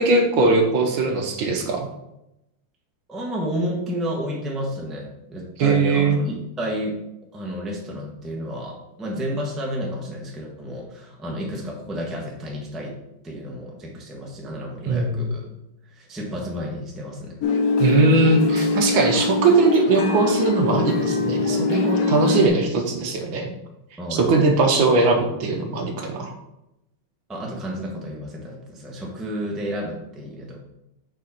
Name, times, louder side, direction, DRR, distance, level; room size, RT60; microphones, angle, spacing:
voice 1, 0.0-1.9 5.6-6.2 14.9-15.3 17.8-23.5 24.2-26.3, right 3 dB, 70° right, 3 dB, 1.6 m, -20 dB
voice 2, 3.1-7.0 7.3-13.0 13.2-15.5 15.9-17.4 24.0-24.3 27.3-30.6, equal, ahead, -2 dB, 0.8 m, -31 dB
sound 1, 17.4-22.5, left 4 dB, 60° left, 0.9 m, -22 dB
6.4 x 5.2 x 4.3 m, 0.87 s
omnidirectional pair, 2.3 m